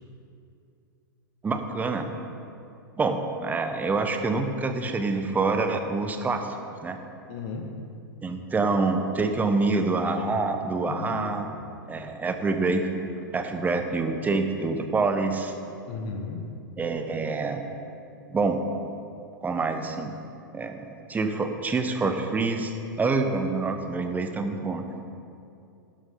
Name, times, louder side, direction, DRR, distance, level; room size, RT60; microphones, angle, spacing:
voice 1, 1.4-2.1 3.0-6.5 6.8-7.0 8.2-11.5 11.9-12.8 13.3-15.5 16.8-17.6 18.3-18.6 19.4-20.1 20.5-22.7 23.0-24.8, right 3 dB, 15° right, 6 dB, 1.0 m, -26 dB
voice 2, 7.3-7.8 10.9-11.6 15.9-16.4, left 4 dB, 40° left, 3 dB, 1.8 m, -35 dB
11.5 x 11.0 x 3.9 m, 2.6 s
hypercardioid pair, 105°, 12 cm